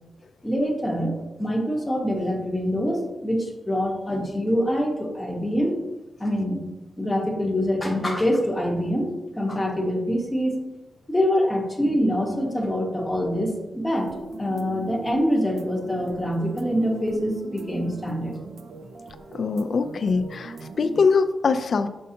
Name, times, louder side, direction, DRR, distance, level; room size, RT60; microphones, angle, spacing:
voice 1, 0.4-1.1 1.4-5.9 6.2-6.6 7.0-10.7 11.1-14.1 14.4-18.4, equal, 10° left, -1 dB, 1.1 m, -25 dB
sound 1, 13.9-21.1, right 3 dB, 65° right, 0.5 m, -40 dB
voice 2, 19.3-21.9, left 4 dB, 55° left, 10 dB, 0.4 m, -22 dB
6.4 x 5.4 x 2.8 m, 1.0 s
wide cardioid pair, 135°, 0 cm